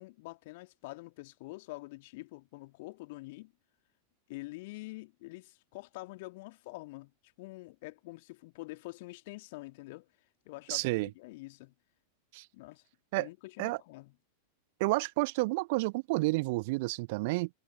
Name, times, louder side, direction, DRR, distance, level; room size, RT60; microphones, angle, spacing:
voice 1, 0.0-3.5 4.3-7.1 7.4-10.1 10.5-11.7 12.5-12.8 13.1-14.1, left 22 dB, 50° left, 2.3 m, -46 dB
voice 2, 10.7-11.1 12.3-12.4 13.1-13.3 13.6-13.8 14.8-17.5, right 24 dB, 50° right, 1.1 m, -30 dB
figure-of-eight pair, 90°, 0 cm